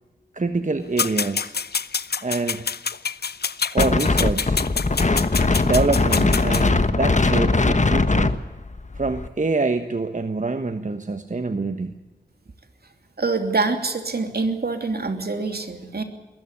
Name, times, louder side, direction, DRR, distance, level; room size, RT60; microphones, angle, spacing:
voice 1, 0.3-1.6 2.2-2.7 3.7-4.6 5.6-8.3 8.9-12.0, right 3 dB, 45° right, 8 dB, 1.3 m, -25 dB
sound 1, 1.0-6.6, left 6 dB, 70° left, 0.7 m, -27 dB
Wind, 3.8-9.3, left 3 dB, 45° left, 1.3 m, -20 dB
voice 2, 13.2-16.0, right 3 dB, 65° right, 6 dB, 2.9 m, -25 dB
22.0 x 14.0 x 9.8 m, 1.2 s
wide cardioid pair, 50°, 17 cm